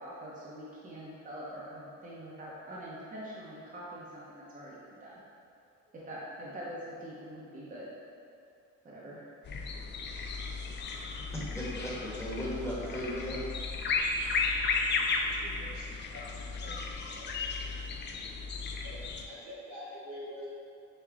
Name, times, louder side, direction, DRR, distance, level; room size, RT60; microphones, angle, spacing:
voice 1, 0.0-5.2 5.9-7.9 8.8-9.2, equal, 25° right, -7 dB, 0.7 m, -44 dB
sound 1, 9.4-19.3, left 4 dB, 35° left, 0.4 m, -34 dB
voice 2, 11.3-13.4, equal, 10° left, -8 dB, 1.2 m, -36 dB
voice 3, 15.1-16.2 16.6-16.7 17.1-17.3 18.8-19.0 19.2-20.5, equal, 85° right, -9 dB, 1.4 m, -46 dB
5.0 x 2.2 x 3.5 m, 2.5 s
cardioid pair, 90°, 30 cm